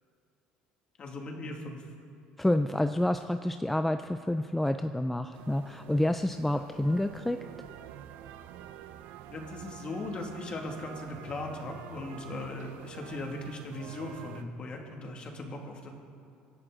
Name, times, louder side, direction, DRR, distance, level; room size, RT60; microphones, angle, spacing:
voice 1, 1.0-1.9 6.5-6.6 9.3-15.9, left 2 dB, 35° left, 1 dB, 2.3 m, -39 dB
voice 2, 2.4-7.4, left 1 dB, 5° left, 8 dB, 0.4 m, -28 dB
sound 1, 5.3-14.4, right 11 dB, 70° right, 0.7 m, -47 dB
25.5 x 11.0 x 3.9 m, 2.5 s
cardioid pair, 135°, 3 cm